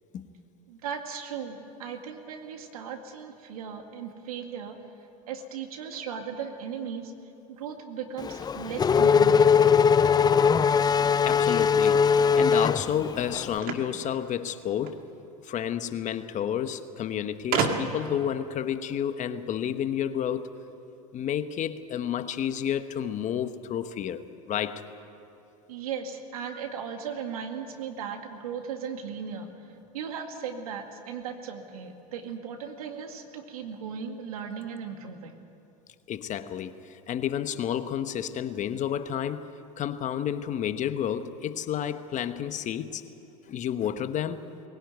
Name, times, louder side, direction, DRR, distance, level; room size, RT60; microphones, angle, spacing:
voice 1, 0.7-4.8 5.3-7.1 7.5-9.8 25.7-35.4, right 7 dB, 80° right, 5 dB, 2.1 m, -37 dB
Race car auto racing / Accelerating revving vroom, 8.2-13.5, left 6 dB, 20° left, 0.6 m, -21 dB
voice 2, 11.2-15.0 15.4-20.5 21.1-24.2 24.5-24.8 36.1-39.5 39.8-43.0 43.5-44.5, left 9 dB, 40° left, 10 dB, 1.2 m, -30 dB
sound 1, 13.6-15.0 16.1-16.2 16.4-16.5 17.5-18.2, right 5 dB, 55° right, 2.2 m, -29 dB
20.5 x 17.5 x 9.4 m, 2.9 s
hypercardioid pair, 85°, 19 cm